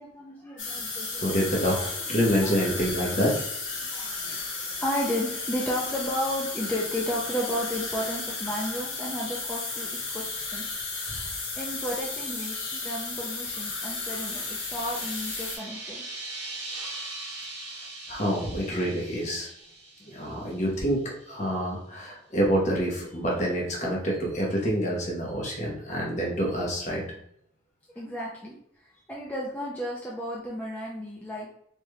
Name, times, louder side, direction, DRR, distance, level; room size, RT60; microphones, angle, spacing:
voice 1, 0.0-1.3 1.8-1.9 2.4-2.8 3.8-16.0 28.0-31.5, equal, 10° left, -5 dB, 0.4 m, -33 dB
sound 1, 0.6-15.6, left 3 dB, 85° left, 0.9 m, -34 dB
voice 2, 1.1-3.3 11.1-11.2 18.1-19.5 20.0-27.0, equal, 40° left, -2 dB, 0.9 m, -27 dB
sound 2, 12.7-21.0, right 2 dB, 80° right, 1.0 m, -41 dB
3.2 x 3.1 x 2.2 m, 0.72 s
head